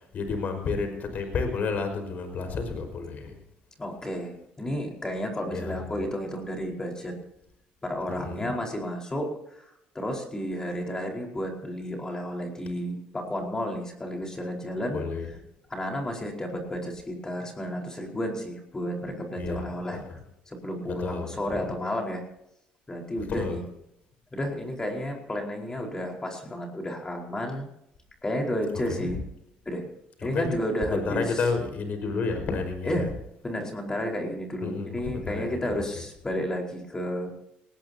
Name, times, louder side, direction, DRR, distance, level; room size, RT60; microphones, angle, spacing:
voice 1, 0.0-3.3 5.5-5.8 8.1-8.5 14.9-15.3 19.4-19.7 19.9-20.1 20.9-21.6 23.3-23.6 28.9-29.1 30.2-30.5 30.9-33.1 34.6-35.8, left 4 dB, 50° left, 6 dB, 5.2 m, -31 dB
voice 2, 3.8-7.2 7.8-15.0 15.7-20.2 20.5-22.2 22.9-23.6 24.3-27.7 28.2-29.2 29.6-29.9 30.2-31.4 32.8-33.1 33.4-37.3, equal, 20° left, 1 dB, 4.8 m, -32 dB
19.0 x 18.5 x 2.9 m, 0.80 s
supercardioid pair, 95°, 3 cm